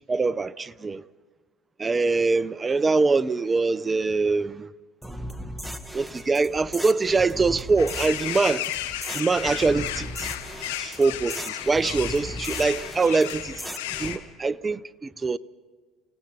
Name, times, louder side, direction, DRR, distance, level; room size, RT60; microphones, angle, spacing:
voice 1, 0.1-1.0 1.8-4.7 5.9-8.7 9.1-10.3 10.8-13.6 14.0-15.4, right 4 dB, 25° right, 0.7 m, -23 dB
sound 1, 5.0-14.2, equal, ahead, 1.7 m, -37 dB
sound 2, 7.8-14.2, left 13 dB, 90° left, 1.4 m, -34 dB
28.0 x 18.0 x 5.4 m
supercardioid pair, 85°, 0 cm